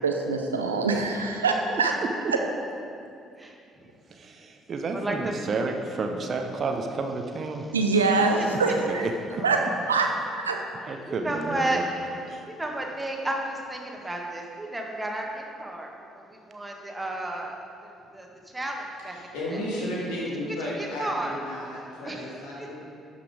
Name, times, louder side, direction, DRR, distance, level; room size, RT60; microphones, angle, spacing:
voice 1, 0.0-1.9 7.7-9.1 9.4-9.6 9.9-10.1 10.3-10.6, right 4 dB, 85° right, 3 dB, 0.6 m, -24 dB
voice 2, 3.4-3.9 4.9-5.5 8.0-9.0 9.3-9.7 10.9-17.6 17.8-19.2 19.5-19.6 20.6-21.4 22.0-22.8, right 1 dB, 15° right, 0 dB, 1.7 m, -33 dB
voice 3, 4.1-7.7 8.9-9.1 9.4-9.5 10.9-11.8 12.3-12.4, right 4 dB, 45° right, 4 dB, 0.9 m, -31 dB
voice 4, 19.1-22.9, left 1 dB, 70° left, -5 dB, 2.6 m, -33 dB
12.0 x 5.8 x 4.9 m, 2.5 s
figure-of-eight pair, 50°, 0 cm